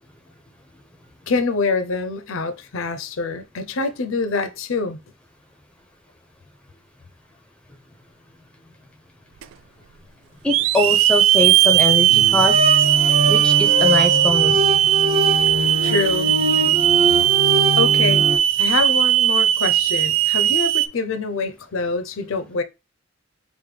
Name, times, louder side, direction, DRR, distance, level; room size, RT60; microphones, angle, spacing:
voice 1, 1.3-5.0 15.8-16.3 17.8-18.3 18.6-22.6, left 4 dB, 80° left, 0.6 m, -25 dB
Hiss / Alarm, 9.4-9.5 10.5-20.9, right 12 dB, 85° right, 0.3 m, -17 dB
voice 2, 10.4-12.9 13.3-14.6, left 1 dB, 5° left, 0.5 m, -23 dB
sound 1, 12.1-18.4, left 1 dB, 30° right, 0.6 m, -23 dB
4.9 x 2.2 x 3.2 m
head